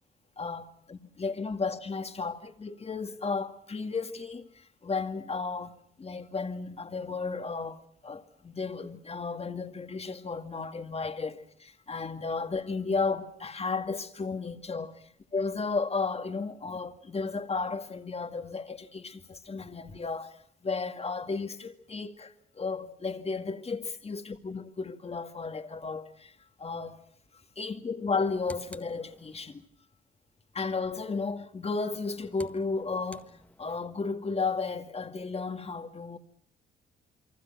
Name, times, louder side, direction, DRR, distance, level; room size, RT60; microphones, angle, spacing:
voice 1, 0.4-7.8 8.0-14.9 15.3-20.4 20.6-26.3 26.6-27.0 27.6-29.6 30.5-33.2 33.6-36.2, left 4 dB, 30° left, 2.2 m, -34 dB
sound 1, 28.0-29.7 31.7-34.0, left 1 dB, 5° left, 1.7 m, -52 dB
29.0 x 24.0 x 6.0 m
cardioid pair, 100°, 21 cm